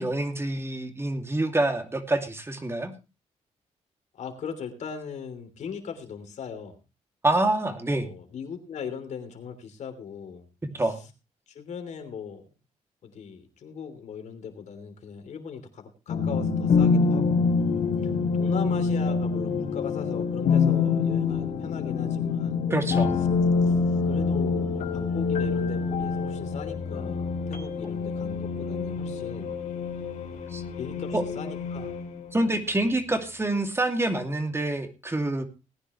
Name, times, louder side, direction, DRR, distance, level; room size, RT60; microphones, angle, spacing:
voice 1, 0.0-2.9 7.2-8.1 10.6-11.0 22.7-23.2 30.5-30.6 31.1-31.2 32.3-35.5, right 2 dB, 20° right, 6 dB, 2.6 m, -26 dB
voice 2, 4.1-6.8 8.0-10.5 10.8-10.9 11.5-12.4 13.0-17.5 18.0-18.1 18.4-22.6 23.7-23.8 24.0-29.6 30.8-31.9, left 6 dB, 70° left, 7 dB, 3.2 m, -38 dB
sound 1, 16.1-32.6, left 5 dB, 85° left, 3.1 m, -26 dB
19.0 x 10.0 x 3.2 m, 0.29 s
cardioid pair, 85°, 12 cm